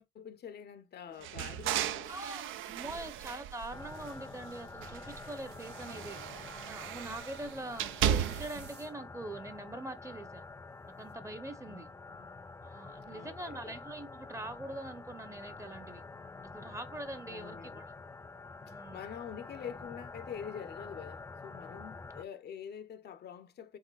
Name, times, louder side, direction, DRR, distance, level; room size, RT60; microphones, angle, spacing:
voice 1, 0.0-2.2 2.9-3.2 5.8-6.2 11.6-12.3 13.1-13.8 17.3-17.9 18.7-23.8, left 8 dB, 55° left, 0.6 m, -46 dB
sound 1, 1.2-4.4 4.8-8.7, right 10 dB, 85° right, 0.5 m, -36 dB
voice 2, 2.1-10.4 11.0-11.9 12.6-16.0 16.5-17.8 18.6-19.0, right 2 dB, 15° right, 0.7 m, -43 dB
sound 2, 3.7-22.2, left 3 dB, 15° left, 0.3 m, -48 dB
sound 3, 5.3-6.5 7.6-8.9 11.1-11.2, right 7 dB, 55° right, 0.8 m, -57 dB
4.8 x 3.7 x 2.3 m
cardioid pair, 90°, 20 cm